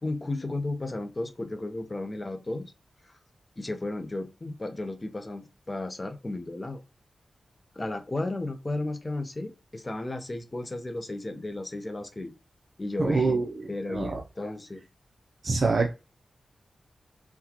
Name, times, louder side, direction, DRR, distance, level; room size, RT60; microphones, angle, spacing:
voice 1, 0.0-2.7 3.6-6.8 7.8-12.3 12.8-13.3 13.7-14.8, left 2 dB, 30° left, 0.7 m, -34 dB
voice 2, 13.0-14.2 15.4-16.0, right 3 dB, 55° right, 0.6 m, -26 dB
4.0 x 2.2 x 2.9 m
cardioid pair, 65°, 0 cm